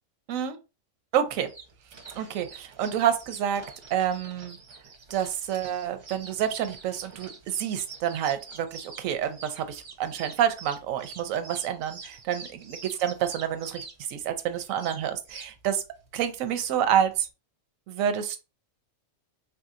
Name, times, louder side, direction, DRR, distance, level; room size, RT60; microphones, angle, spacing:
voice 1, 1.1-1.5 2.2-3.6 3.9-4.6 5.1-13.8 14.1-15.8 16.1-17.1 17.9-18.4, right 9 dB, 90° right, 10 dB, 1.0 m, -28 dB
sound 1, 1.3-17.3, right 4 dB, 45° right, 0.6 m, -46 dB
3.4 x 2.7 x 2.4 m, 0.30 s
omnidirectional pair, 1.3 m